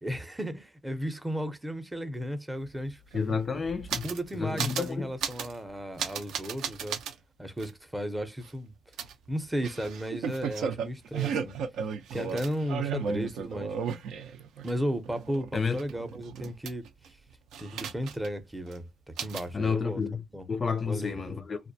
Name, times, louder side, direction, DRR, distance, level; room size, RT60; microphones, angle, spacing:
voice 1, 0.0-3.0 4.0-7.0 7.4-8.7 9.3-11.6 12.1-13.8 14.6-16.9 17.6-18.9 19.2-20.0 20.3-20.5 20.9-21.4, equal, 10° right, 0.6 m, -34 dB
sound 1, 2.6-2.7 2.9-4.3 4.6-4.9 5.2-5.6 6.0-7.1 7.6-7.7 9.0-14.7 15.1-17.1 17.5-18.4 18.7-18.8 19.2-19.5, right 7 dB, 80° right, 0.5 m, -34 dB
voice 2, 3.1-4.1 4.4-5.1 15.5-15.8 19.5-21.6, left 5 dB, 35° left, 0.3 m, -30 dB
2.3 x 2.1 x 2.6 m
cardioid pair, 90°, 0 cm